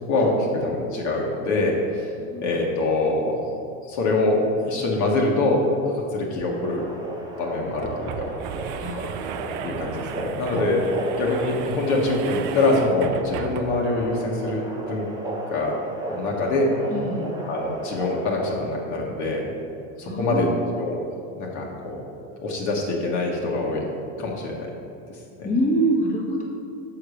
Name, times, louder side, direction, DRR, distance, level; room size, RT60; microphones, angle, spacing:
voice 1, 0.1-2.1 2.4-3.4 3.9-6.8 7.4-8.3 9.6-10.8 11.2-15.1 15.5-15.7 16.1-16.7 17.5-19.4 20.0-20.5 20.7-21.0 21.4-22.0 22.4-23.8 24.2-24.7 25.4-25.5, left 2 dB, 50° left, -1 dB, 1.4 m, -24 dB
sound 1, 6.4-6.5 6.8-6.9 7.6-14.0, right 8 dB, 50° right, 0.5 m, -35 dB
sound 2, 6.5-18.7, right 1 dB, 10° right, 1.2 m, -34 dB
voice 2, 8.7-9.2 9.6-9.8 10.5-10.6 16.9-17.3 20.0-20.5 25.4-26.4, right 1 dB, 20° left, -3 dB, 1.4 m, -26 dB
6.4 x 5.0 x 6.4 m, 2.5 s
supercardioid pair, 125°, 39 cm